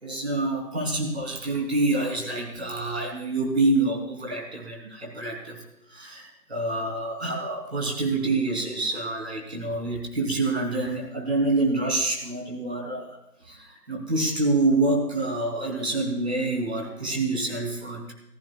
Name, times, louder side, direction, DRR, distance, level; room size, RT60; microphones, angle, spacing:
voice 1, 0.0-5.6 5.9-13.1 13.4-18.1, right 2 dB, 40° right, 1 dB, 3.3 m, -27 dB
28.0 x 14.5 x 2.4 m, 0.86 s
figure-of-eight pair, 170°, 47 cm